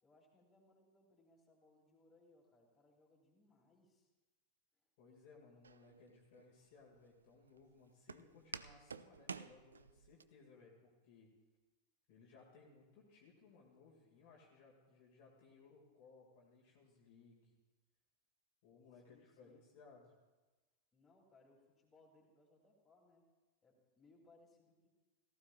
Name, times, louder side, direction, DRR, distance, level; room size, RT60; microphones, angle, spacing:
voice 1, 0.0-4.1 4.7-4.8 19.0-19.6 20.9-23.3 23.6-24.9, left 2 dB, 15° left, -2 dB, 3.2 m, -69 dB
voice 2, 5.0-11.3 12.1-17.5 18.6-20.1, left 4 dB, 45° left, -3 dB, 2.2 m, -63 dB
Walk footsteps, 5.6-10.2, right 5 dB, 70° right, 0.3 m, -51 dB
18.0 x 15.0 x 2.5 m, 1.2 s
figure-of-eight pair, 90°, 0 cm